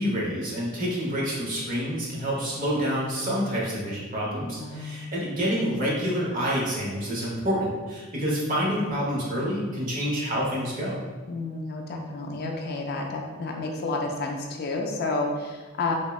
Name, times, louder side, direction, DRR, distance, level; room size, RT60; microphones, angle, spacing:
voice 1, 0.0-11.0, equal, 40° right, -5 dB, 0.7 m, -28 dB
voice 2, 4.6-5.0 11.3-15.9, left 3 dB, 50° left, 1 dB, 0.3 m, -30 dB
3.4 x 2.0 x 2.3 m, 1.4 s
head